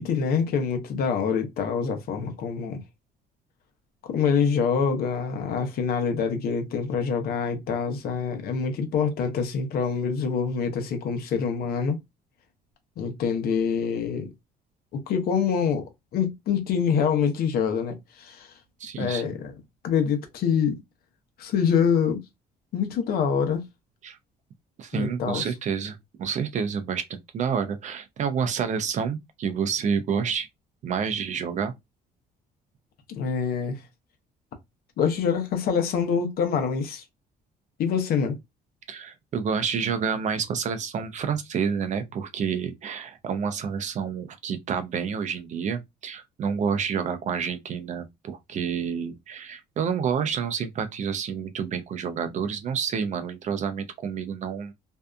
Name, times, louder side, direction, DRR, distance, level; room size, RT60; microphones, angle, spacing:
voice 1, 0.0-2.8 4.1-12.0 13.0-14.3 14.9-18.5 19.0-19.5 19.8-20.8 21.4-22.2 22.7-23.6 24.9-25.4 33.1-33.8 35.0-37.0 37.8-38.4, left 6 dB, 65° left, 0.7 m, -25 dB
voice 2, 18.8-19.3 24.0-24.2 24.8-30.5 30.8-31.7 38.9-54.7, right 6 dB, 45° right, 0.5 m, -29 dB
2.6 x 2.3 x 2.3 m
cardioid pair, 110°, 17 cm